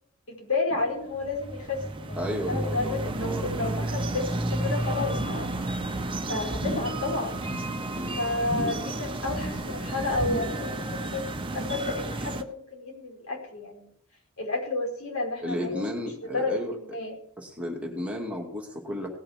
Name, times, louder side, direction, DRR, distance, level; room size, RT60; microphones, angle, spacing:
voice 1, 0.3-5.5 6.3-7.4 8.1-13.9 14.4-16.0 16.3-17.2, left 3 dB, 80° left, -1 dB, 4.8 m, -31 dB
sound 1, 0.8-12.4, right 1 dB, 25° right, 1.0 m, -32 dB
voice 2, 2.2-3.9 7.9-8.2 15.4-16.8 17.4-19.1, equal, 5° right, -1 dB, 2.4 m, -33 dB
sound 2, 5.0-5.5 5.8-6.1 6.5-7.0 7.4-7.8 8.4-8.9 9.2-9.7 10.1-10.7 11.0-11.1, right 1 dB, 35° left, 4.0 m, -34 dB
18.0 x 6.2 x 5.9 m, 0.64 s
head